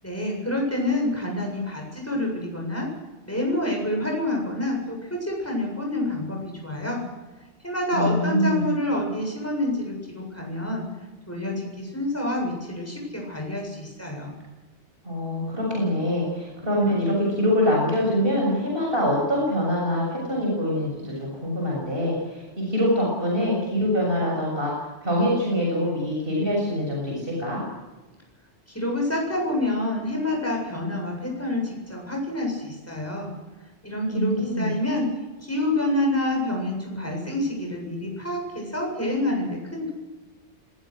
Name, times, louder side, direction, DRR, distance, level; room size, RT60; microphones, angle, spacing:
voice 1, 0.0-2.9 3.2-7.0 7.6-10.8 11.3-14.4 28.7-33.3 33.8-35.1 35.4-39.9, left 1 dB, 10° left, 0 dB, 7.7 m, -27 dB
voice 2, 7.9-8.7 15.0-27.6 34.1-34.7, equal, 55° right, -2 dB, 7.4 m, -24 dB
26.0 x 21.0 x 6.5 m, 1.2 s
omnidirectional pair, 1.2 m